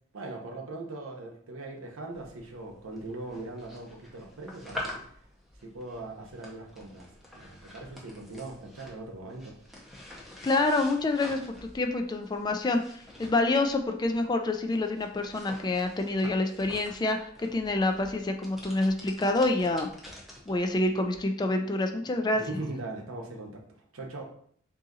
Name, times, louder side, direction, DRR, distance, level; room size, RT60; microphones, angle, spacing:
voice 1, 0.1-5.1 5.6-7.1 7.3-9.6 22.3-23.6 23.9-24.3, right 2 dB, 85° right, 2 dB, 0.8 m, -40 dB
sound 1, 2.1-21.2, left 1 dB, ahead, 0.7 m, -47 dB
voice 2, 10.4-12.8 13.2-19.9 20.5-22.4, left 2 dB, 20° left, 5 dB, 0.3 m, -27 dB
3.9 x 2.7 x 3.7 m, 0.63 s
head